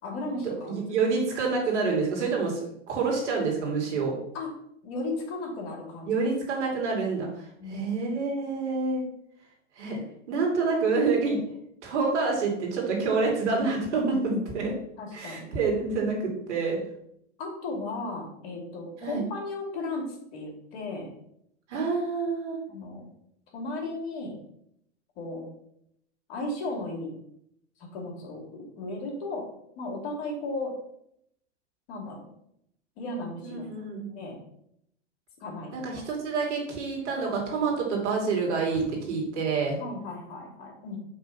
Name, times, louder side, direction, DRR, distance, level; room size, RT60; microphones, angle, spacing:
voice 1, 0.0-0.8 4.3-4.5 4.8-6.1 7.6-8.0 13.9-14.5 15.0-15.5 17.4-21.1 22.7-23.0 23.5-24.3 25.2-25.5 26.3-27.1 27.9-29.4 29.8-30.7 31.9-32.3 33.0-33.5 34.1-34.4 35.4-35.7 38.7-38.8 39.8-41.0, left 2 dB, 60° left, 0 dB, 2.4 m, -35 dB
voice 2, 0.6-4.2 6.0-7.3 7.7-9.0 9.8-11.4 11.8-14.7 15.1-16.8 19.0-19.2 21.7-22.6 33.4-34.1 35.7-38.8 39.1-39.8, right 4 dB, 75° right, -1 dB, 2.6 m, -27 dB
5.5 x 3.5 x 5.6 m, 0.75 s
hypercardioid pair, 120°, 35 cm